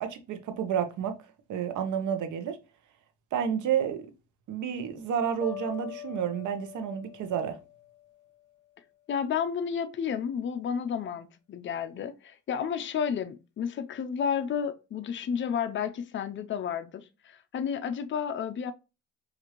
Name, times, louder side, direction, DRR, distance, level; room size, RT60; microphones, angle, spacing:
voice 1, 0.0-1.1 1.5-2.6 3.3-4.1 4.5-7.6, right 8 dB, 75° right, 0.9 m, -30 dB
sound 1, 5.4-8.5, left 12 dB, 10° left, 1.0 m, -44 dB
voice 2, 9.1-18.7, left 7 dB, 40° left, 0.5 m, -31 dB
4.9 x 2.6 x 3.0 m
cardioid pair, 90°, 30 cm